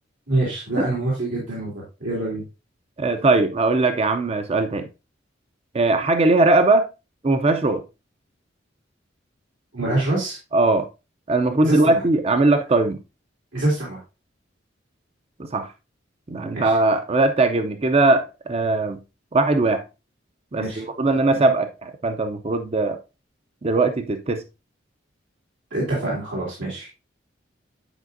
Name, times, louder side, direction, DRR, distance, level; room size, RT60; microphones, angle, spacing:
voice 1, 0.3-2.4 9.7-10.4 11.6-12.0 13.5-14.0 16.5-16.8 20.6-20.8 25.7-26.9, right 2 dB, 85° right, 2.4 m, -25 dB
voice 2, 3.0-4.9 5.7-6.9 7.2-7.8 10.5-10.9 11.3-13.0 15.4-15.7 16.3-19.0 19.3-19.8 20.5-23.0 23.6-24.4, right 2 dB, 30° right, 0.5 m, -20 dB
10.0 x 5.0 x 2.6 m
head